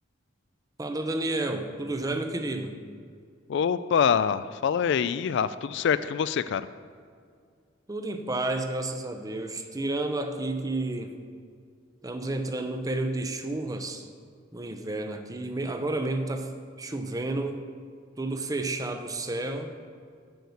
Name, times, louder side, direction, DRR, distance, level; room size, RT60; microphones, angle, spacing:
voice 1, 0.8-2.8 7.9-11.1 12.0-14.1 14.5-16.5 16.8-17.6 18.2-19.7, right 2 dB, 20° right, 7 dB, 0.7 m, -31 dB
voice 2, 3.5-6.6, left 7 dB, 65° left, 14 dB, 0.3 m, -25 dB
7.9 x 6.5 x 7.0 m, 2.1 s
head